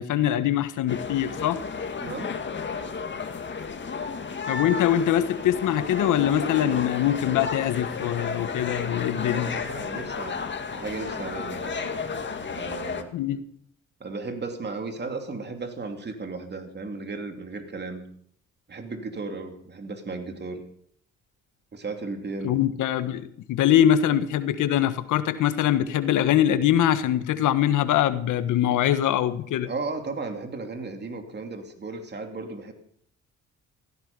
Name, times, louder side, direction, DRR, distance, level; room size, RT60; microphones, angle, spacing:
voice 1, 0.0-1.6 4.5-9.5 13.1-13.4 22.4-29.7, left 11 dB, 85° left, 11 dB, 1.5 m, -23 dB
sound 1, 0.9-13.0, left 5 dB, 40° left, 2.1 m, -33 dB
voice 2, 2.0-2.3 9.2-10.5 10.7-11.9 12.5-13.1 14.0-18.0 18.7-20.6 21.7-22.6 29.6-32.7, right 3 dB, 35° right, 5 dB, 2.8 m, -35 dB
16.5 x 15.0 x 5.4 m, 0.63 s
cardioid pair, 90°, 30 cm